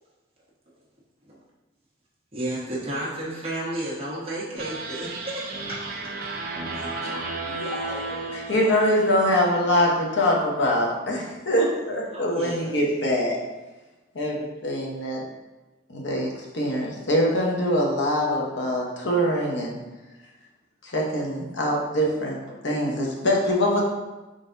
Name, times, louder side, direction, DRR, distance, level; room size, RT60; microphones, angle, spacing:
voice 1, 2.3-5.5 9.7-9.8 12.1-12.7, right 1 dB, 30° right, -8 dB, 1.3 m, -32 dB
sound 1, 4.6-9.9, right 3 dB, 55° right, 0.6 m, -34 dB
voice 2, 6.7-8.3, left 2 dB, 35° left, -2 dB, 0.5 m, -39 dB
voice 3, 8.3-13.4 14.1-15.2 15.9-19.7 20.8-22.4 22.6-23.8, equal, 75° left, -2 dB, 0.9 m, -23 dB
4.9 x 3.9 x 2.6 m, 1.1 s
head